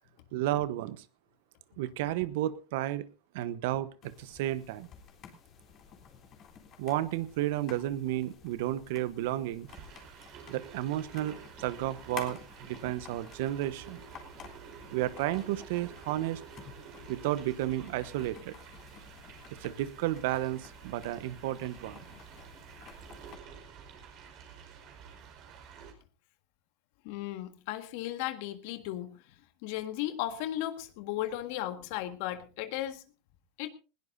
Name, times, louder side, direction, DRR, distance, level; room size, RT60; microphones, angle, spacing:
voice 1, 0.3-1.0 1.8-3.1 3.3-4.9 6.8-9.7 10.5-14.0 14.9-16.4 17.1-18.5 19.6-22.0, right 14 dB, 70° right, 16 dB, 1.0 m, -32 dB
sound 1, 4.0-23.4, left 7 dB, 40° left, 3.4 m, -52 dB
sound 2, 9.7-25.9, right 7 dB, 55° right, 4.9 m, -50 dB
voice 2, 27.0-29.2 29.6-33.0 33.6-33.7, left 13 dB, 65° left, 9 dB, 1.7 m, -35 dB
20.0 x 17.0 x 2.7 m, 0.33 s
hypercardioid pair, 105°, 0 cm